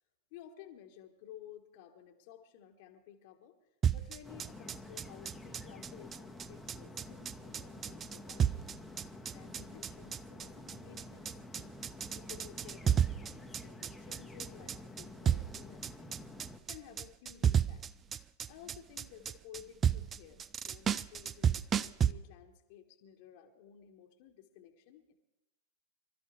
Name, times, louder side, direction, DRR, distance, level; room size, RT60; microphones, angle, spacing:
voice 1, 0.3-3.5 3.9-8.7 9.3-11.7 12.1-16.2 16.7-17.9 18.5-25.1, left 10 dB, 50° left, 4 dB, 1.3 m, -55 dB
sound 1, 3.8-22.1, right 8 dB, 25° right, 0.4 m, -32 dB
sound 2, 4.2-16.6, left 1 dB, 10° left, 1.1 m, -50 dB
25.0 x 13.0 x 3.3 m, 0.95 s
figure-of-eight pair, 90°, 0 cm